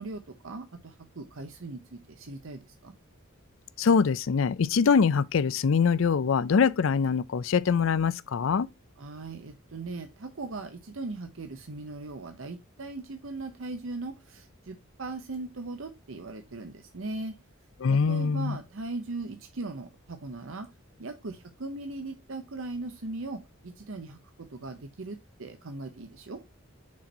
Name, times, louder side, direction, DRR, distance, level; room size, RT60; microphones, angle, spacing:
voice 1, 0.0-2.9 9.0-17.3 18.1-20.7 21.0-26.4, right 2 dB, 70° right, 0.8 m, -39 dB
voice 2, 3.8-8.7 17.8-18.6, left 5 dB, 65° left, 0.4 m, -23 dB
6.3 x 4.4 x 4.0 m
head